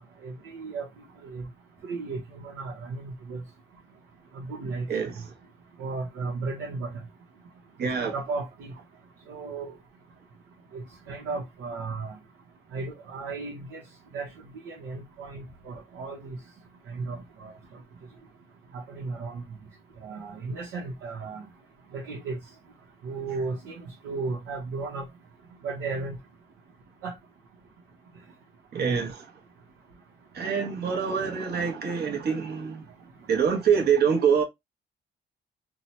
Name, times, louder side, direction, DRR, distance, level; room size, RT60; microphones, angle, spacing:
voice 1, 0.2-0.9 1.2-1.5 1.8-3.4 4.3-4.9 5.8-6.9 7.8-8.7 9.3-9.7 10.7-12.2 12.7-13.8 14.1-14.3 14.6-16.4 16.9-17.5 18.7-19.4 20.0-21.4 21.9-22.4 23.0-25.1 25.6-26.2 27.0-27.1 28.8-29.0, right 3 dB, 90° right, 0.8 m, -34 dB
voice 2, 4.9-5.3 7.8-8.1 28.7-29.2 30.3-32.9 33.3-34.4, right 7 dB, 55° right, 0.9 m, -25 dB
2.8 x 2.1 x 2.8 m
cardioid pair, 90°, 20 cm